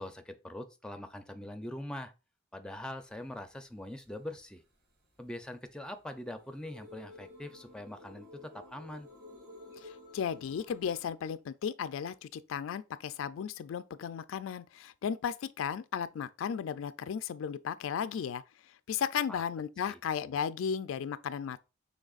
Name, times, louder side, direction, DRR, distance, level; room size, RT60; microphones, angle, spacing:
voice 1, 0.0-2.1 2.5-4.6 5.2-9.1 19.3-19.4 19.9-20.4, left 1 dB, 5° left, 0.4 m, -43 dB
sound 1, 2.8-11.1, left 2 dB, 50° right, 2.5 m, -54 dB
voice 2, 9.8-18.4 18.9-21.6, left 7 dB, 80° left, 0.3 m, -35 dB
6.3 x 3.2 x 2.4 m
head